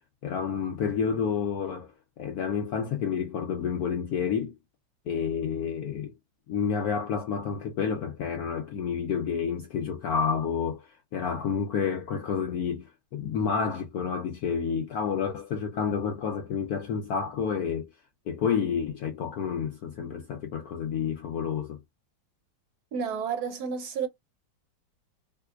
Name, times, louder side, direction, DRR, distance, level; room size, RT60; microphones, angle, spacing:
voice 1, 0.2-1.9 2.2-4.5 5.1-6.1 6.5-17.9 18.3-21.8, left 6 dB, 70° left, 0.9 m, -29 dB
voice 2, 22.9-24.1, right 6 dB, 65° right, 1.0 m, -31 dB
3.7 x 2.7 x 2.4 m
omnidirectional pair, 2.0 m